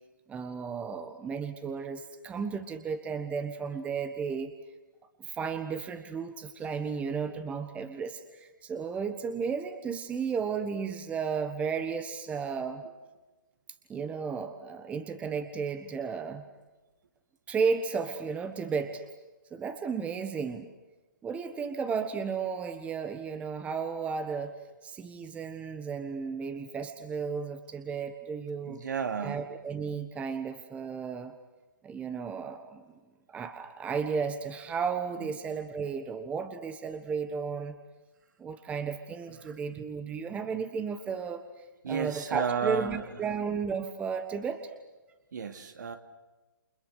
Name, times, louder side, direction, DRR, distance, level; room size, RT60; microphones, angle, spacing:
voice 1, 0.3-4.5 5.2-12.8 13.9-16.5 17.5-19.0 19.5-20.7 21.2-24.5 24.8-28.8 29.2-31.3 31.8-32.8 33.3-37.8 38.4-44.7, right 5 dB, 10° right, 9 dB, 1.4 m, -34 dB
voice 2, 28.6-29.5 35.2-35.3 39.4-39.5 41.8-43.0 45.3-46.0, right 7 dB, 60° right, 6 dB, 2.8 m, -33 dB
29.5 x 28.5 x 6.5 m, 1.1 s
figure-of-eight pair, 135°, 11 cm